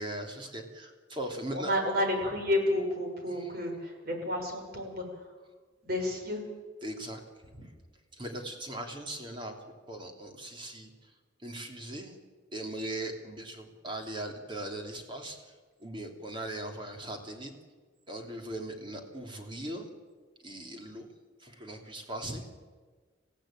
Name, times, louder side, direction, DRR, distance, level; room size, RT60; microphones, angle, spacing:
voice 1, 0.0-1.7 3.3-3.7 6.8-7.2 7.6-7.7 8.1-11.1 11.4-12.2 12.5-15.5 15.8-17.5 18.1-19.9 20.4-21.1 21.4-22.4, right 1 dB, 25° right, 3 dB, 3.2 m, -39 dB
voice 2, 1.5-5.0 5.8-6.4, left 1 dB, 50° right, 3 dB, 6.0 m, -30 dB
28.5 x 15.5 x 9.0 m, 1.5 s
head